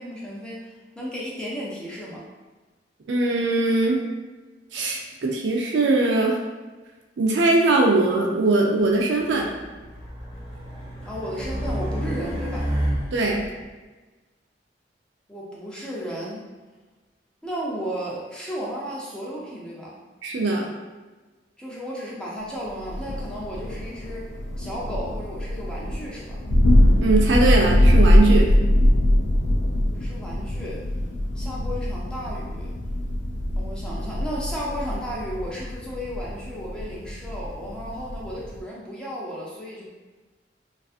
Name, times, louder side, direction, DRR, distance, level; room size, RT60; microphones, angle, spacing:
voice 1, 0.0-2.2 11.0-12.7 15.3-16.4 17.4-20.0 21.6-24.3 24.6-26.4 29.9-30.8 31.4-32.7 33.6-39.9, equal, 5° left, -6 dB, 0.5 m, -34 dB
voice 2, 3.1-4.0 4.7-6.4 7.2-9.5 13.1-13.5 20.2-20.7 27.0-28.5, right 2 dB, 70° right, 0 dB, 0.4 m, -21 dB
Race car auto racing, 9.1-13.5, equal, 30° right, 0.7 m, -30 dB
Thunder, 22.8-38.6, left 1 dB, 75° left, 0.4 m, -22 dB
2.5 x 2.4 x 2.4 m, 1.2 s
head